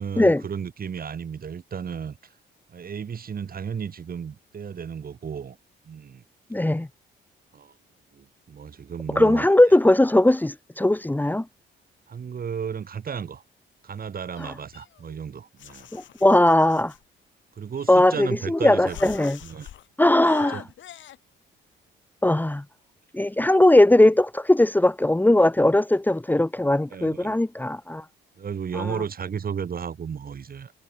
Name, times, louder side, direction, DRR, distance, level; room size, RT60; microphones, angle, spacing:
voice 1, 0.0-2.2 2.7-5.6 5.8-6.2 7.5-7.7 8.1-9.5 12.1-13.4 13.8-15.9 17.6-19.1 19.4-19.7 20.5-20.7 26.9-27.4 28.4-30.7, right 7 dB, 50° right, 5.0 m, -34 dB
voice 2, 6.5-6.9 9.1-11.4 14.4-14.5 15.9-16.9 17.9-19.4 20.0-20.6 22.2-22.6 23.1-28.0 28.7-29.0, left 1 dB, 10° left, 1.6 m, -19 dB
sound 1, 14.4-15.2 15.6-17.0 17.7-18.5 18.9-19.9 20.2-21.2, left 11 dB, 70° left, 4.5 m, -43 dB
cardioid pair, 90°, 20 cm